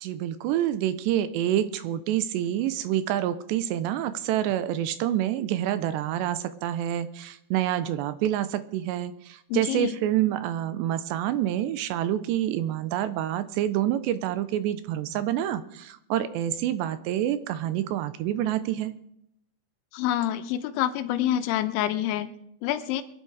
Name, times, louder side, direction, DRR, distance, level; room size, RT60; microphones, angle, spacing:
voice 1, 0.0-18.9, right 12 dB, 80° right, 13 dB, 2.7 m, -27 dB
voice 2, 9.5-9.9 19.9-22.3 22.6-23.0, left 12 dB, 90° left, 10 dB, 3.2 m, -27 dB
23.0 x 10.0 x 4.8 m, 0.75 s
omnidirectional pair, 5.3 m